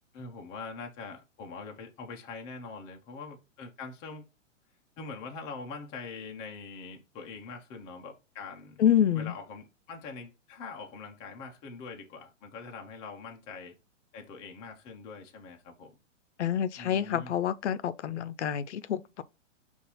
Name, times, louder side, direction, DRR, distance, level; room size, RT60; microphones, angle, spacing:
voice 1, 0.1-4.3 5.0-8.8 9.1-13.7 14.1-15.9 16.8-17.3, left 4 dB, 10° left, 0.4 m, -43 dB
voice 2, 8.8-9.3 16.4-19.2, left 9 dB, 65° left, 0.5 m, -27 dB
5.2 x 2.5 x 4.0 m
figure-of-eight pair, 115°, 38 cm